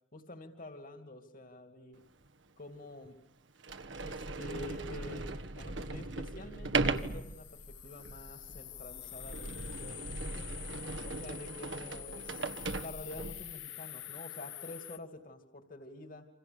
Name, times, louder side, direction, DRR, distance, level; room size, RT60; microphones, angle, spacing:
voice 1, 0.1-2.0 2.6-3.2 4.0-10.5 11.0-12.5 12.8-16.3, left 2 dB, 45° left, 6 dB, 2.6 m, -48 dB
Sliding door, 2.2-2.3 3.0-3.1 3.6-13.5, right 3 dB, 80° right, 1.5 m, -38 dB
sound 1, 6.9-15.0, left 13 dB, 80° left, 1.5 m, -47 dB
29.0 x 27.0 x 7.0 m, 0.78 s
head